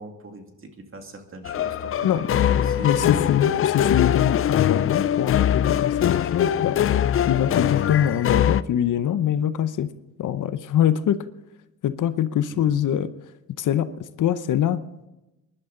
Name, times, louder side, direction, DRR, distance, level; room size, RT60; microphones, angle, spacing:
voice 1, 0.0-2.9 12.5-12.7, right 2 dB, 40° right, 4 dB, 2.3 m, -41 dB
sound 1, 1.4-8.6, left 10 dB, 40° left, 0.4 m, -22 dB
voice 2, 2.0-6.8 7.2-9.9 10.2-11.2 11.8-13.1 13.6-13.9 14.2-14.8, left 10 dB, 65° left, 13 dB, 0.8 m, -23 dB
24.0 x 11.5 x 3.8 m, 0.98 s
cardioid pair, 85°, 33 cm